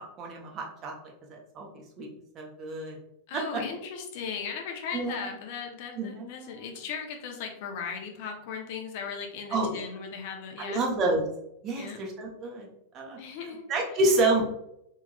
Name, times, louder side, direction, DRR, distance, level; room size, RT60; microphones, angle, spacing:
voice 1, 0.2-0.9 1.3-2.1 2.3-3.0 4.9-5.3 6.0-6.6 9.5-9.8 10.7-11.2 11.6-12.7 12.9-13.2 13.7-14.4, right 2 dB, 30° right, 0 dB, 0.8 m, -28 dB
voice 2, 3.3-10.8 11.8-12.0 13.2-13.6, left 6 dB, 50° left, 2 dB, 0.7 m, -37 dB
3.5 x 3.1 x 2.3 m, 0.79 s
figure-of-eight pair, 90°, 0 cm